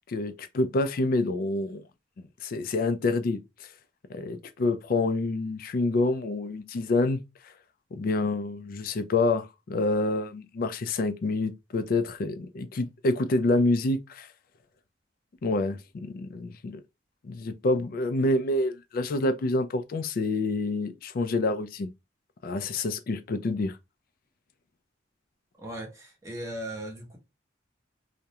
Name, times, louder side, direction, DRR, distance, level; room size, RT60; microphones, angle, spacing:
voice 1, 0.1-1.8 2.2-3.4 4.1-7.2 7.9-14.3 15.4-16.8 17.2-21.9 22.4-23.8, left 2 dB, 50° left, 0.3 m, -27 dB
voice 2, 25.6-27.2, right 1 dB, 15° right, 0.7 m, -38 dB
2.3 x 2.1 x 2.7 m
head